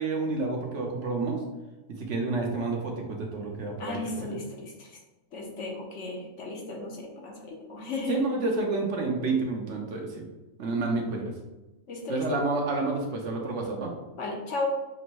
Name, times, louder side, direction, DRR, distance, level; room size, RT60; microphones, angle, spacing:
voice 1, 0.0-1.4 2.0-4.4 8.1-10.2 10.6-11.3 12.1-13.9, right 3 dB, 65° right, 1 dB, 1.1 m, -29 dB
voice 2, 3.8-4.9 5.3-8.2 11.9-12.4 14.2-14.7, left 3 dB, 70° left, 0 dB, 1.2 m, -35 dB
6.3 x 2.6 x 3.0 m, 1.1 s
omnidirectional pair, 1.3 m